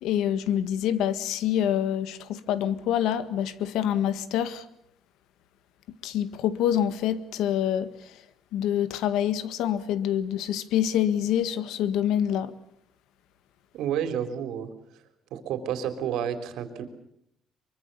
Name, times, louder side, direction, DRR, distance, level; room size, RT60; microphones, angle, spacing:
voice 1, 0.0-4.7 6.0-8.2 8.5-12.5, left 10 dB, 90° left, 1.7 m, -26 dB
voice 2, 13.7-15.0 15.3-16.8, right 9 dB, 85° right, 3.7 m, -30 dB
24.0 x 23.5 x 6.9 m
cardioid pair, 170°, 0 cm